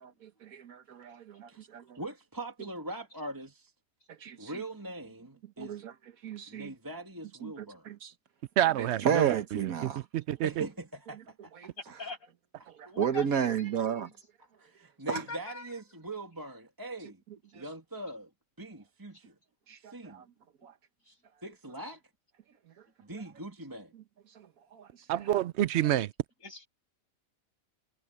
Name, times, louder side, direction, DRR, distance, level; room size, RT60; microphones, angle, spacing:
voice 1, 0.0-1.8 4.2-4.5 5.6-5.8 6.2-6.7 7.4-8.1 9.0-10.0 13.0-14.1 15.1-15.2 19.7-20.2 20.6-20.7 24.7-24.9, right 8 dB, 80° right, 1.5 m, -32 dB
voice 2, 2.0-3.7 4.4-5.8 6.5-7.9 10.4-11.7 14.6-17.2 17.5-18.3 18.6-19.3 19.8-20.2 21.4-22.0 23.0-23.9, right 1 dB, 15° right, 2.2 m, -42 dB
voice 3, 8.6-10.6 25.1-26.1, right 12 dB, 65° right, 0.7 m, -28 dB
voice 4, 11.8-12.3 12.8-13.9 15.0-15.7 21.1-21.2 21.8-21.9 26.4-26.7, left 3 dB, 70° left, 7.6 m, -43 dB
omnidirectional pair, 1.5 m